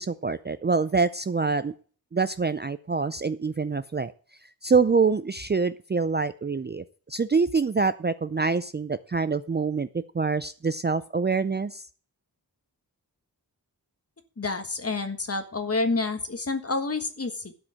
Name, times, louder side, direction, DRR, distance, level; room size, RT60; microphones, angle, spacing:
voice 1, 0.0-1.7 2.1-4.1 4.6-9.9 10.1-11.8, right 4 dB, 25° right, 12 dB, 0.4 m, -25 dB
voice 2, 14.4-17.5, left 3 dB, 35° left, 8 dB, 1.5 m, -28 dB
12.0 x 5.1 x 7.5 m, 0.41 s
wide cardioid pair, 105°, 39 cm